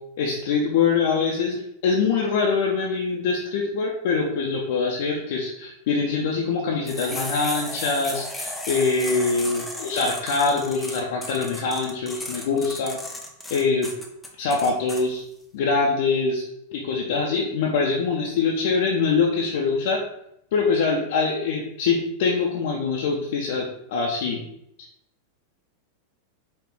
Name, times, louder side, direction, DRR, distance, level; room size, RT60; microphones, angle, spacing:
voice 1, 0.2-13.0 13.5-13.9 14.4-15.2 15.5-16.4 16.7-20.0 20.5-24.4, left 4 dB, 55° left, -2 dB, 0.5 m, -24 dB
sound 1, 6.9-15.0, left 1 dB, 5° left, 0.6 m, -34 dB
4.9 x 2.4 x 3.6 m, 0.79 s
figure-of-eight pair, 90°, 0 cm